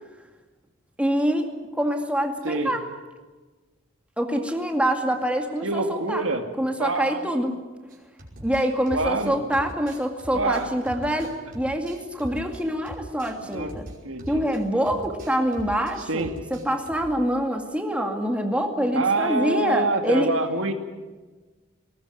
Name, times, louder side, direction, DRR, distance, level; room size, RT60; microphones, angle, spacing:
voice 1, 1.0-1.5 1.7-2.8 4.2-6.3 6.6-7.5 8.4-13.8 14.3-20.3, equal, 5° right, 3 dB, 2.2 m, -25 dB
voice 2, 2.4-2.8 5.6-6.4 6.8-7.3 8.9-9.4 10.3-10.7 12.3-12.4 13.4-13.7 14.0-14.4 16.1-16.3 18.9-20.7, right 3 dB, 75° right, 6 dB, 2.2 m, -26 dB
sound 1, 7.9-14.6 14.9-15.9 16.2-17.2, equal, 45° right, 5.4 m, -41 dB
20.0 x 19.5 x 9.7 m, 1.3 s
head